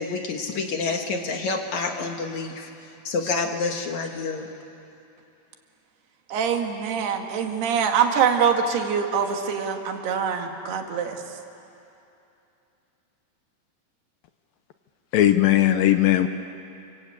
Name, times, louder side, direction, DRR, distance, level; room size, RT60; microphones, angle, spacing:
voice 1, 0.0-2.7 3.0-4.5, left 4 dB, 55° left, 4 dB, 2.4 m, -28 dB
voice 2, 6.3-11.2, right 7 dB, 80° right, 4 dB, 3.8 m, -24 dB
voice 3, 15.1-16.3, left 13 dB, 75° left, 9 dB, 2.3 m, -18 dB
28.5 x 24.5 x 8.6 m, 2.7 s
omnidirectional pair, 4.5 m